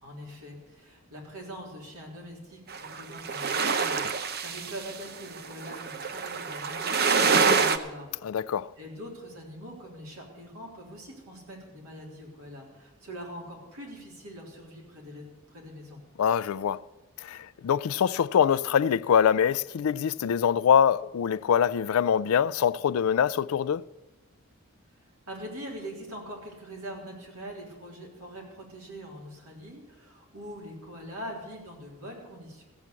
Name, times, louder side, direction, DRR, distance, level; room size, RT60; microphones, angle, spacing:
voice 1, 0.0-8.2 8.8-16.0 25.0-32.6, equal, 85° right, 3.5 m, -43 dB
sound 1, 2.7-7.8, right 5 dB, 45° right, 0.7 m, -26 dB
voice 2, 8.2-8.7 16.2-16.8 17.2-23.8, left 8 dB, 75° left, 0.3 m, -24 dB
15.0 x 7.5 x 8.2 m
head